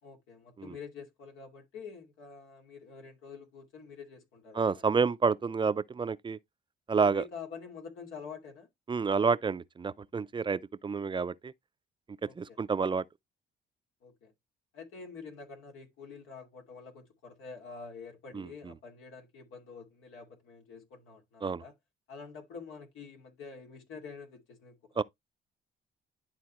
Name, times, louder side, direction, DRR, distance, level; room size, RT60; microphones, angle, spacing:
voice 1, 0.0-4.8 6.9-8.7 12.2-12.6 14.0-14.3 14.7-21.7 22.1-25.0, left 5 dB, 90° left, 2.5 m, -47 dB
voice 2, 4.5-6.4 6.9-7.2 8.9-11.5 12.4-13.0 18.3-18.5 21.4-21.6 25.0-25.1, right 5 dB, 25° right, 0.5 m, -29 dB
11.5 x 4.0 x 3.0 m
cardioid pair, 90°, 20 cm